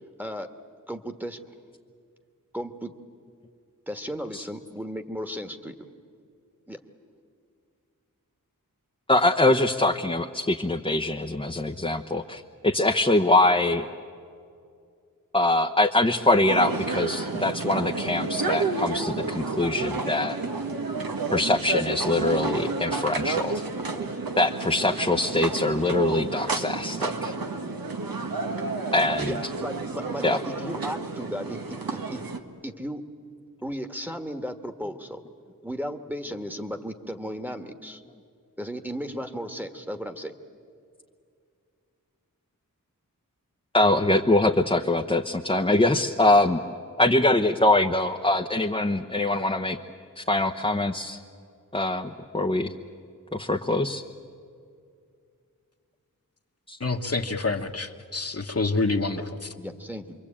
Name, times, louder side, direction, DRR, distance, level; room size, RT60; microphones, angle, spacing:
voice 1, 0.9-1.4 2.5-2.9 3.9-5.7 6.7-6.8 29.2-32.2 32.6-33.0 33.6-35.2 35.6-38.0 38.6-40.3 59.6-60.1, equal, 5° right, 5 dB, 1.5 m, -35 dB
voice 2, 9.1-13.9 15.3-20.4 21.3-23.6 24.4-27.3 28.9-29.3 30.2-30.4 43.7-46.6 47.0-49.8 50.2-51.2 51.7-52.7 53.3-54.0 56.7-56.8, left 2 dB, 15° left, 2 dB, 0.9 m, -23 dB
sound 1, 16.5-32.4, right 3 dB, 85° right, 1.5 m, -30 dB
voice 3, 56.8-59.6, left 3 dB, 45° left, 3 dB, 1.4 m, -27 dB
27.5 x 23.0 x 8.7 m, 2.3 s
wide cardioid pair, 70°, 34 cm